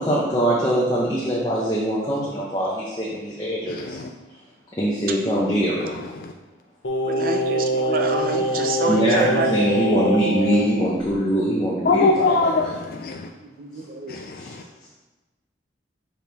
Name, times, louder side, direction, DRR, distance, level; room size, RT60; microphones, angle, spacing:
voice 1, 0.0-4.0 4.8-5.9 8.9-12.5 14.4-14.5, equal, 20° left, -6 dB, 0.9 m, -22 dB
voice 2, 3.7-4.1 5.8-6.3 11.8-13.3 14.1-14.6, left 3 dB, 50° left, 3 dB, 0.3 m, -23 dB
Singing, 6.8-10.7 11.0-11.1, equal, 85° left, 0.9 m, -24 dB
voice 3, 7.1-9.6 13.6-14.2, right 3 dB, 50° right, 4 dB, 0.5 m, -27 dB
6.1 x 4.5 x 3.5 m, 1.2 s
head